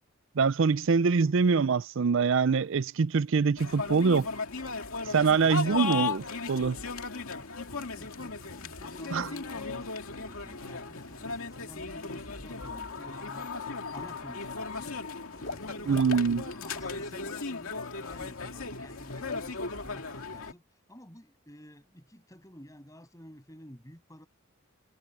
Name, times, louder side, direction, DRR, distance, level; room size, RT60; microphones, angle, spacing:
voice 1, 0.4-4.3 5.1-6.2 6.5-6.8 9.1-9.3 15.9-16.4, right 5 dB, 60° right, 0.5 m, -24 dB
sound 1, 3.6-20.5, left 4 dB, 80° left, 2.4 m, -37 dB
voice 2, 5.3-6.2 7.3-13.5 13.9-14.9 15.3-20.6 20.9-24.3, equal, 15° left, 7.2 m, -50 dB
Water / Liquid, 12.8-13.1 13.5-14.2 14.5-17.0 17.3-17.5 17.8-17.9, left 3 dB, 60° left, 3.0 m, -43 dB
head